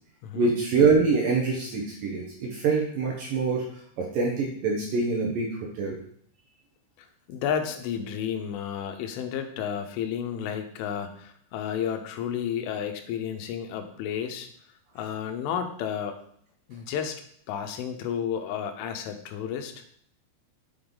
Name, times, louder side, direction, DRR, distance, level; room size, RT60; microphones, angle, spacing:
voice 1, 0.3-3.6 4.0-5.5 5.7-6.0, right 4 dB, 65° right, -1 dB, 2.4 m, -24 dB
voice 2, 7.0-14.5 15.0-16.2 16.7-17.2 17.5-19.8, left 8 dB, 85° left, 7 dB, 3.4 m, -32 dB
8.7 x 8.0 x 4.0 m, 0.63 s
omnidirectional pair, 5.5 m